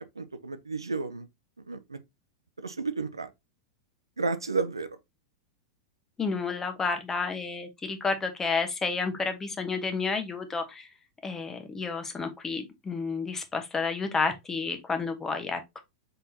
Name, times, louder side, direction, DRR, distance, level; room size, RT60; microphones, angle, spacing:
voice 1, 0.2-1.3 1.6-2.0 2.6-3.3 4.2-4.9, right 4 dB, 85° right, 0.5 m, -32 dB
voice 2, 6.2-10.9 11.2-15.8, left 4 dB, 15° left, 0.9 m, -31 dB
4.0 x 3.9 x 2.7 m
figure-of-eight pair, 95°, 2 cm